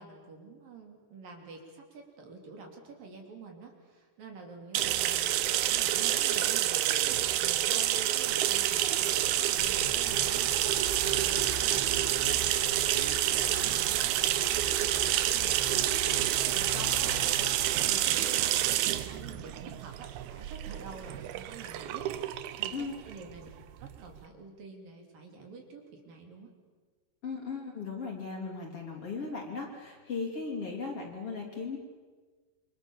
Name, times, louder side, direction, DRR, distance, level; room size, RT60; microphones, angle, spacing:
voice 1, 0.0-22.3 22.6-23.5 23.8-26.5, right 4 dB, 55° right, 2 dB, 4.8 m, -48 dB
sound 1, 4.7-24.2, right 13 dB, 75° right, 2.7 m, -28 dB
sound 2, 9.6-17.8, equal, 15° left, 1.9 m, -41 dB
voice 2, 27.2-31.8, left 4 dB, 35° left, -1 dB, 4.0 m, -37 dB
28.5 x 25.5 x 7.3 m, 1.4 s
omnidirectional pair, 4.8 m